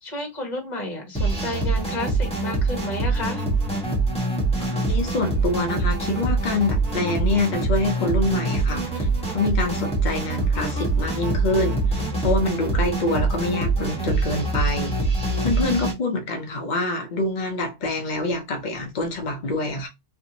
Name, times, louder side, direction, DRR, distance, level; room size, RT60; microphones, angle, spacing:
voice 1, 0.0-3.4, left 1 dB, 30° left, 1.1 m, -31 dB
sound 1, 1.1-15.9, right 3 dB, 5° left, 0.8 m, -24 dB
voice 2, 4.7-9.1 9.3-15.0 15.4-19.9, left 2 dB, 90° left, 0.4 m, -26 dB
3.3 x 2.6 x 2.8 m
omnidirectional pair, 1.6 m